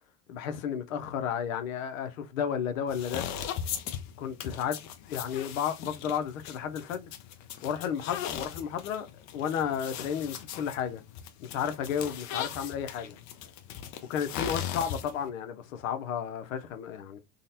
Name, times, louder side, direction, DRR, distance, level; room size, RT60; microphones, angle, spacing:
voice 1, 0.3-3.2 4.2-4.7 5.1-7.1 7.6-9.1 9.3-11.0 11.4-13.2 14.1-17.2, left 8 dB, 90° left, 0.7 m, -32 dB
sound 1, 2.9-15.3, left 9 dB, 45° left, 0.6 m, -39 dB
3.8 x 2.1 x 2.7 m
supercardioid pair, 115°, 39 cm